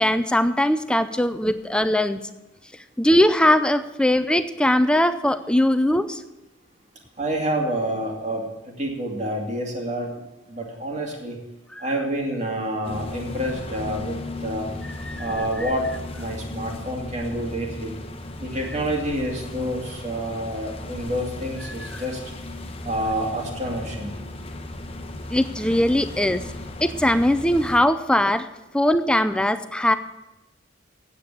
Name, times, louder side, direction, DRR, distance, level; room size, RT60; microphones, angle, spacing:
voice 1, 0.0-2.2 3.0-6.2 11.8-11.9 15.1-15.3 21.9-22.0 25.3-26.4 26.8-28.5 28.7-30.0, left 1 dB, 5° left, 11 dB, 0.4 m, -20 dB
voice 2, 7.2-8.5 8.8-10.2 10.5-11.4 11.8-14.7 15.2-15.9 16.2-17.9 18.4-22.2 22.8-24.2, right 1 dB, 35° right, 0 dB, 2.4 m, -28 dB
sound 1, 12.8-27.8, left 2 dB, 30° left, 1.1 m, -36 dB
9.4 x 8.4 x 8.0 m, 1.0 s
head